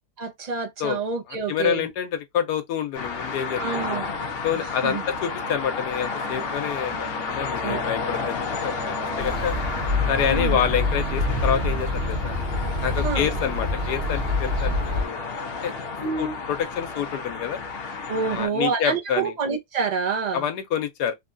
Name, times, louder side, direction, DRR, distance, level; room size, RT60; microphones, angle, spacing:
voice 1, 0.2-1.9 3.6-4.1 4.6-5.0 7.6-7.8 10.2-10.6 13.0-13.3 16.0-16.4 18.1-20.4, right 5 dB, 65° right, 0.4 m, -27 dB
voice 2, 1.3-3.9 4.4-9.6 10.1-12.4 12.8-15.2 15.6-15.7 16.2-17.6 18.3-19.3 20.3-21.1, left 8 dB, 90° left, 1.3 m, -27 dB
sound 1, 2.9-18.5, left 4 dB, 60° left, 0.6 m, -31 dB
sound 2, 4.9-13.4, equal, ahead, 1.0 m, -47 dB
sound 3, 9.2-15.0, left 2 dB, 50° right, 0.9 m, -26 dB
3.4 x 2.2 x 2.4 m
omnidirectional pair, 1.7 m